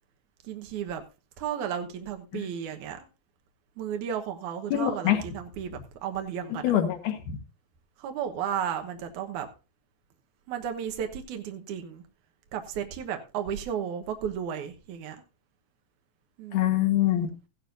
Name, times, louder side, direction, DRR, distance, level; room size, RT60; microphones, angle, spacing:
voice 1, 0.4-1.0 1.4-3.1 3.8-6.7 8.0-9.5 10.5-12.0 12.5-15.2 16.4-16.8, right 8 dB, 70° right, 2.4 m, -34 dB
voice 2, 4.7-5.2 6.6-7.4 16.5-17.3, left 12 dB, 65° left, 2.8 m, -24 dB
15.0 x 11.5 x 2.6 m
omnidirectional pair, 3.9 m